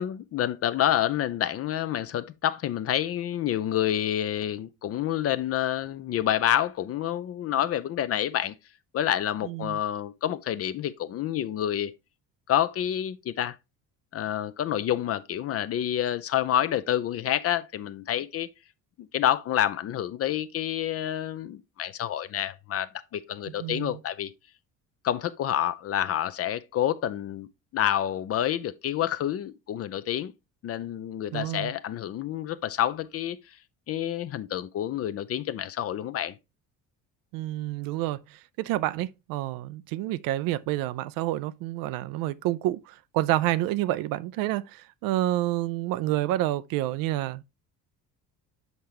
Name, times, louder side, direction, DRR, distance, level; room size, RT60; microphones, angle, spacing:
voice 1, 0.0-8.5 8.9-11.9 12.5-13.6 14.1-18.5 19.1-24.3 25.0-27.5 27.7-30.3 30.6-33.4 33.9-36.3, left 11 dB, 30° left, 0.5 m, -28 dB
voice 2, 9.5-9.8 23.6-23.9 31.3-31.7 37.3-38.2 38.6-47.5, right 15 dB, 45° right, 0.5 m, -28 dB
7.9 x 5.5 x 2.8 m
figure-of-eight pair, 55°, 49 cm